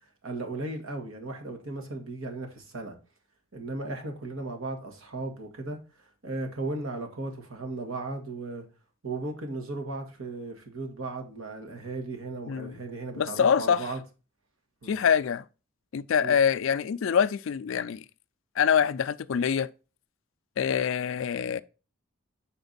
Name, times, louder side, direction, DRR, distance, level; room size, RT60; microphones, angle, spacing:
voice 1, 0.2-2.9 3.5-8.6 9.0-14.0 14.8-14.9 16.2-16.4, right 2 dB, 80° right, 1.5 m, -36 dB
voice 2, 13.2-13.9 14.9-15.4 15.9-18.0 18.6-19.7 20.6-21.6, left 7 dB, 70° left, 0.3 m, -25 dB
5.9 x 4.4 x 3.9 m
head